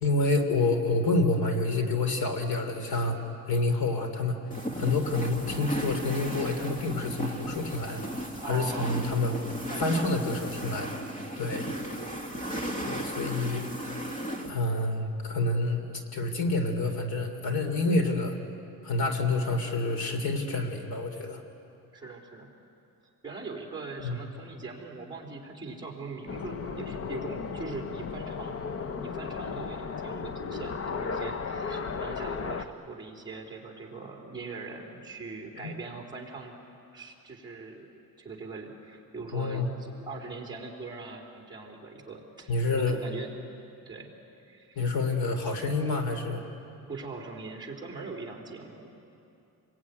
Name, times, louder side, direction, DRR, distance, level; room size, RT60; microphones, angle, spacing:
voice 1, 0.0-3.2 3.5-4.4 4.7-8.1 8.5-9.4 9.8-11.0 11.4-11.7 12.9-13.7 14.4-18.4 18.8-21.4 24.0-24.2 35.6-35.7 39.3-39.7 42.5-43.0 44.8-46.4, left 2 dB, 70° left, 6 dB, 3.1 m, -28 dB
voice 2, 3.1-3.4 4.7-4.9 8.3-8.9 9.7-10.1 21.9-22.5 23.2-28.6 29.0-36.5 36.9-43.4 43.9-44.1 44.4-44.9 46.8-48.9, right 4 dB, 10° right, -1 dB, 3.5 m, -41 dB
sound 1, 4.5-14.5, right 1 dB, 20° left, 1.8 m, -35 dB
sound 2, 26.3-32.7, left 5 dB, 35° left, 0.8 m, -35 dB
28.0 x 22.0 x 9.6 m, 2.7 s
cardioid pair, 165°, 38 cm